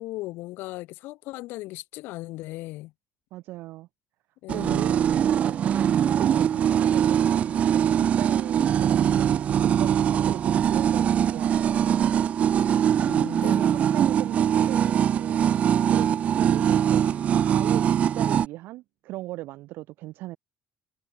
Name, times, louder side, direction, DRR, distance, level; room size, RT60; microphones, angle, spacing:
voice 1, 0.0-2.9 4.4-4.9 13.1-13.7, left 19 dB, 75° left, 3.8 m, -37 dB
voice 2, 3.3-3.9 4.5-5.7 6.0-12.1 13.4-15.4 15.8-20.4, right 18 dB, 70° right, 1.4 m, -38 dB
sound 1, 4.5-18.5, right 9 dB, 40° right, 0.9 m, -22 dB
cardioid pair, 155°, 4 cm